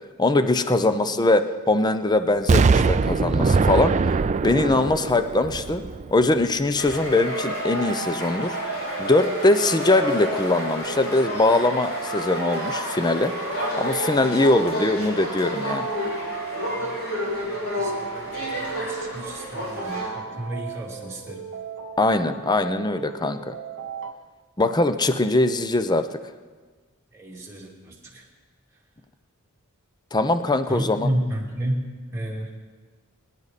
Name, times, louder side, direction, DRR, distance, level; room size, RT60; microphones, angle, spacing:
voice 1, 0.2-4.0 4.4-5.8 6.1-8.6 9.0-13.3 13.8-15.9 22.0-23.5 24.6-26.1 30.1-31.1, left 2 dB, 20° left, 10 dB, 0.6 m, -21 dB
Explosion, 2.5-6.4 6.9-7.0, right 4 dB, 30° right, 0.3 m, -21 dB
sound 1, 6.7-20.1, equal, 90° left, 5.2 m, -30 dB
sound 2, 7.3-24.1, right 6 dB, 55° right, 1.0 m, -37 dB
voice 2, 17.4-21.4 27.1-28.3 30.7-32.5, right 1 dB, 15° right, -4 dB, 2.6 m, -32 dB
23.5 x 10.5 x 4.1 m, 1.4 s
head